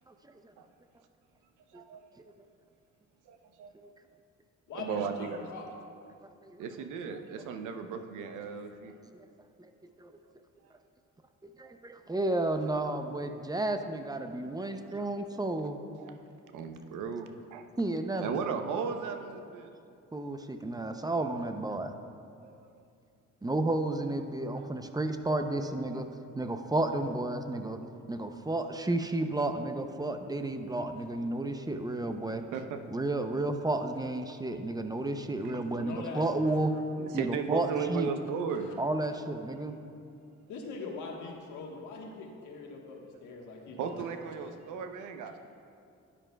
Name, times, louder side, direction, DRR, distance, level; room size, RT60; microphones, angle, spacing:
voice 1, 1.7-2.2 3.3-3.7 4.7-5.5 6.6-8.9 10.2-10.3 14.5-15.5 15.9-16.2 16.5-17.7 18.1-19.7 22.4-22.8 24.5-25.0 25.3-25.4 25.9-26.0 32.5-32.8 35.4-35.6 37.0-38.7 39.7-39.8 43.8-45.4, right 6 dB, 85° right, 7 dB, 0.7 m, -37 dB
voice 2, 4.7-5.7 31.0-31.1 35.7-36.8 37.7-37.8 38.5-38.7 40.5-44.1, left 3 dB, 80° left, 0 dB, 1.4 m, -42 dB
voice 3, 11.6-15.8 17.8-18.4 20.1-21.9 23.4-26.1 26.4-27.8 28.1-32.4 32.9-36.7 37.1-38.1 38.8-39.8, right 2 dB, 15° right, 7 dB, 0.5 m, -32 dB
11.5 x 9.8 x 2.3 m, 2.4 s
cardioid pair, 90°, 30 cm